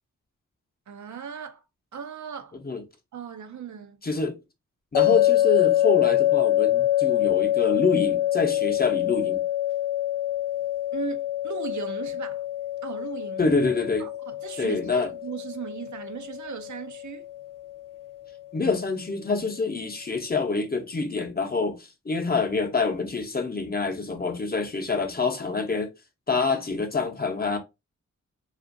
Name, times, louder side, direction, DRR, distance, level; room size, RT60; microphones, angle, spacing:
voice 1, 0.9-1.6 1.9-2.6 3.1-4.0 10.9-12.4 12.8-13.4 14.0-17.3, right 8 dB, 60° right, 0.5 m, -37 dB
voice 2, 4.0-4.4 4.9-9.4 13.4-14.1 14.6-15.1 18.5-25.9 26.3-27.6, left 4 dB, 30° left, 0.7 m, -26 dB
sound 1, 4.9-18.1, left 13 dB, 75° left, 0.6 m, -25 dB
2.5 x 2.5 x 2.5 m
cardioid pair, 50°, 33 cm